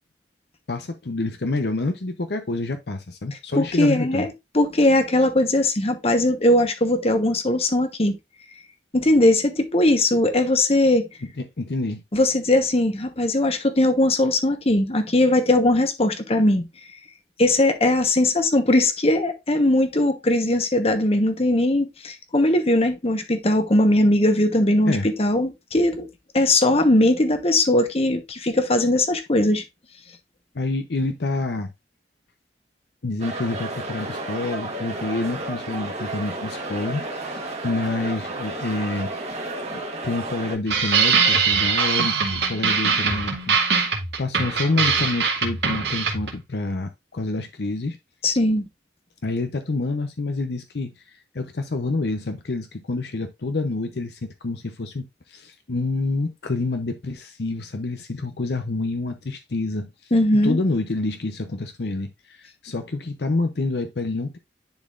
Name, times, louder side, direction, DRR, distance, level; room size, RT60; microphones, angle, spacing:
voice 1, 0.7-4.3 11.6-12.0 24.9-25.1 30.5-31.7 33.0-39.1 39.7-43.6 44.2-48.0 49.2-51.0 51.3-60.1 60.4-64.4, left 2 dB, 65° left, 0.7 m, -27 dB
voice 2, 3.6-4.3 4.5-8.1 8.9-11.1 12.1-16.6 17.4-26.1 26.3-29.6 48.2-48.7 60.1-60.6, left 1 dB, 35° left, 1.1 m, -20 dB
sound 1, 33.2-40.6, right 2 dB, 40° right, 1.5 m, -32 dB
sound 2, 40.7-46.4, right 5 dB, 75° right, 2.0 m, -22 dB
10.5 x 4.1 x 2.5 m
head